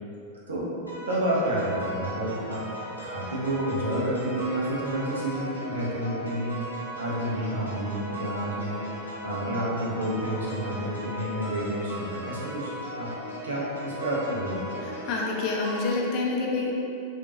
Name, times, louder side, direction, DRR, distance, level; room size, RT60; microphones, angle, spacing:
sound 1, 0.9-15.9, equal, 80° left, 0.9 m, -38 dB
voice 1, 1.0-2.6 3.0-13.1 13.4-14.6, right 1 dB, 70° right, -6 dB, 0.8 m, -30 dB
voice 2, 14.8-16.7, left 3 dB, 40° left, -1 dB, 0.5 m, -28 dB
3.7 x 2.5 x 2.8 m, 2.8 s
figure-of-eight pair, 90°, 0 cm